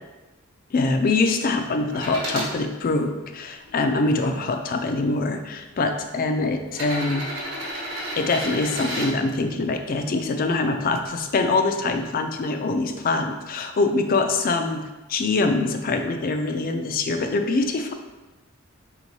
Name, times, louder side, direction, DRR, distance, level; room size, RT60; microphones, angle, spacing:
voice 1, 0.7-7.3 8.1-14.8 15.1-17.9, left 3 dB, 45° left, 6 dB, 0.4 m, -24 dB
sound 1, 1.9-2.5 3.2-4.3 5.3-5.4 6.7-9.1 11.0-11.1, equal, 60° right, 1.1 m, -32 dB
4.6 x 3.7 x 2.7 m, 1.1 s
head